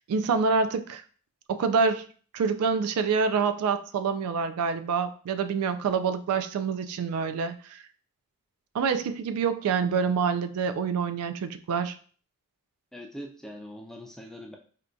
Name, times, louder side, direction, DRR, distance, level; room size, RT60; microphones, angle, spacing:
voice 1, 0.1-1.0 1.5-2.1 2.3-7.8 8.7-12.0, right 5 dB, 75° right, 10 dB, 0.3 m, -26 dB
voice 2, 12.9-14.6, equal, ahead, 1 dB, 0.4 m, -42 dB
4.4 x 2.3 x 2.5 m, 0.43 s
head